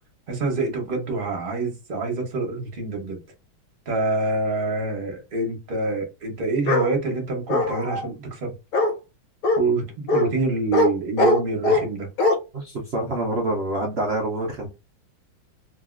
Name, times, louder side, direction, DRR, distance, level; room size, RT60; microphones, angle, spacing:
voice 1, 0.3-3.2 3.9-8.5 9.6-12.1, right 3 dB, 35° right, 0.9 m, -26 dB
Bark, 6.7-6.9 7.5-8.1 8.7-8.9 9.4-9.6 10.1-10.3 10.7-10.9 11.2-11.8 12.2-12.4, left 2 dB, 60° left, 0.9 m, -20 dB
voice 2, 12.5-14.7, right 1 dB, 80° right, 0.5 m, -26 dB
3.0 x 2.7 x 2.5 m
omnidirectional pair, 2.2 m